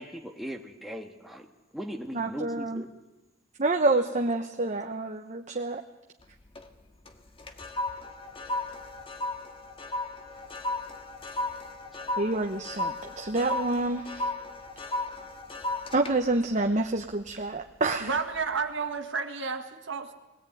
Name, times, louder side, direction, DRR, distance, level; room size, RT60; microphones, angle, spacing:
voice 1, 0.0-1.5 1.7-2.9, equal, ahead, 2 dB, 1.6 m, -38 dB
voice 2, 2.1-2.8 3.6-5.8 12.2-14.3 15.9-18.1, right 2 dB, 40° right, 5 dB, 1.0 m, -28 dB
sound 1, 6.2-6.7 7.1-17.6 18.1-18.4, left 2 dB, 30° left, 1.6 m, -35 dB
voice 3, 18.0-20.1, right 5 dB, 65° right, 6 dB, 1.9 m, -31 dB
20.5 x 17.5 x 9.2 m, 1.0 s
head